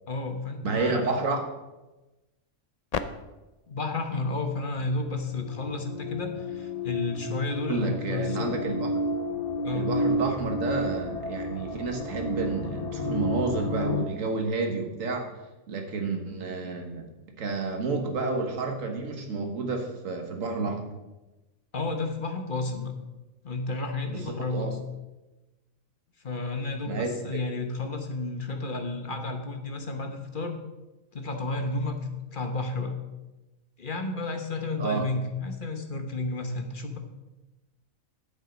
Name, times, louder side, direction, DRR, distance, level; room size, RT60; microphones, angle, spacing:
voice 1, 0.1-1.2 3.7-8.5 9.6-9.9 21.7-22.9 23.4-24.8 26.2-30.6 31.1-32.0 32.3-33.0 33.8-37.0, left 2 dB, 40° left, 5 dB, 1.2 m, -32 dB
voice 2, 0.6-1.4 7.7-8.9 9.7-15.3 15.7-17.1 17.4-20.9 24.1-24.7 26.8-27.4 34.8-35.1, right 3 dB, 70° right, 3 dB, 1.8 m, -30 dB
sound 1, 2.9-3.0 4.9-14.0, left 2 dB, 65° left, 0.3 m, -31 dB
9.5 x 7.9 x 5.2 m, 1.1 s
omnidirectional pair, 1.4 m